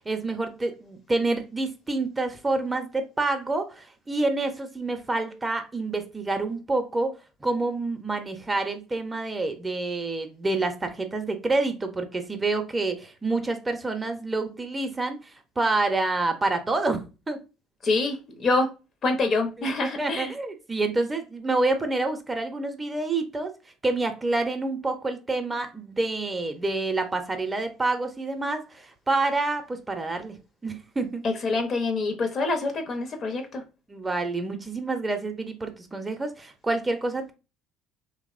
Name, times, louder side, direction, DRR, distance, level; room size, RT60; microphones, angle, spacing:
voice 1, 0.1-7.1 7.4-17.4 19.6-23.5 23.8-30.4 30.6-31.2 33.9-37.3, right 2 dB, 20° right, 0.5 m, -28 dB
voice 2, 17.8-18.7 19.0-20.3 31.2-33.6, left 3 dB, 50° left, 0.6 m, -26 dB
2.8 x 2.0 x 2.4 m
hypercardioid pair, 70°, 0 cm